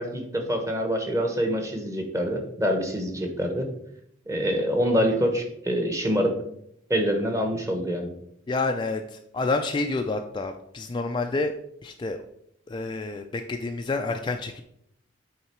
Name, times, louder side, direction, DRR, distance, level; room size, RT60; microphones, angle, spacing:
voice 1, 0.0-3.7 4.3-6.3 6.9-8.1, equal, 15° right, 4 dB, 1.0 m, -25 dB
voice 2, 8.5-11.5 11.8-12.2 12.7-14.6, left 3 dB, 25° left, 5 dB, 0.3 m, -28 dB
8.6 x 3.8 x 4.4 m, 0.74 s
head